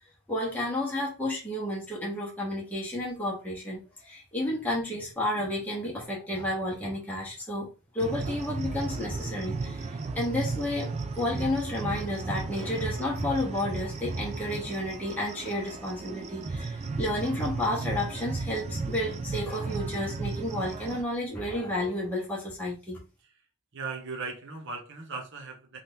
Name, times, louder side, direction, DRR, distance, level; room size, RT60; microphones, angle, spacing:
voice 1, 0.3-7.7 7.9-10.9 11.2-23.0, left 1 dB, 10° left, -4 dB, 0.8 m, -31 dB
sound 1, 8.0-21.0, right 3 dB, 30° right, 0.3 m, -34 dB
voice 2, 23.7-25.8, right 4 dB, 60° right, 2 dB, 0.8 m, -38 dB
2.8 x 2.3 x 3.4 m, 0.31 s
head